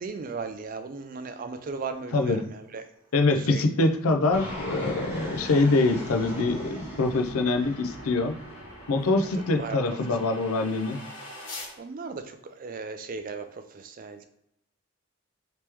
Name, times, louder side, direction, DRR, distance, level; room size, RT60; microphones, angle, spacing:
voice 1, 0.0-2.6 3.5-3.6 9.6-10.0 11.8-13.5 13.7-14.2, right 4 dB, 40° right, 8 dB, 0.4 m, -36 dB
voice 2, 2.1-2.5 3.1-8.3 8.9-11.0, left 3 dB, 85° left, 6 dB, 0.5 m, -24 dB
sound 1, 3.1-11.7, left 1 dB, 65° left, 1.3 m, -47 dB
Fixed-wing aircraft airplane, 4.3-9.7, equal, 10° right, 1.2 m, -39 dB
3.0 x 3.0 x 3.4 m, 0.80 s
head